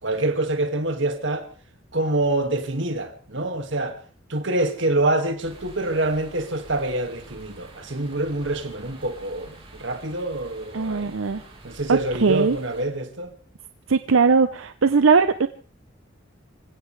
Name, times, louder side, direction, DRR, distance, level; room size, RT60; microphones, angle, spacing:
voice 1, 0.0-1.5 1.9-4.0 4.3-11.2 11.6-13.3, right 2 dB, 65° right, 2.2 m, -26 dB
sound 1, 5.4-12.9, right 1 dB, 30° right, 4.1 m, -47 dB
voice 2, 10.7-11.4 11.9-12.6 13.9-15.5, right 5 dB, 90° right, 0.7 m, -19 dB
25.5 x 16.5 x 3.4 m
head